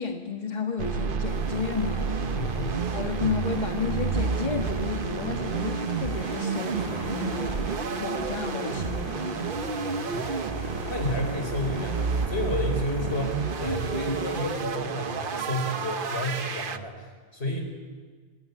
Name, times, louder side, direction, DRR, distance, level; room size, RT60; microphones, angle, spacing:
voice 1, 0.0-2.1 2.9-9.6, left 5 dB, 45° left, 3 dB, 1.9 m, -32 dB
sound 1, 0.8-16.8, right 5 dB, 55° right, 1.1 m, -30 dB
sound 2, 1.2-14.4, right 1 dB, 25° right, 2.5 m, -40 dB
voice 2, 2.4-2.8 10.1-10.5 10.9-12.0 12.3-17.6, left 1 dB, 80° left, 4 dB, 4.9 m, -31 dB
27.0 x 19.5 x 8.5 m, 1.5 s
omnidirectional pair, 1.1 m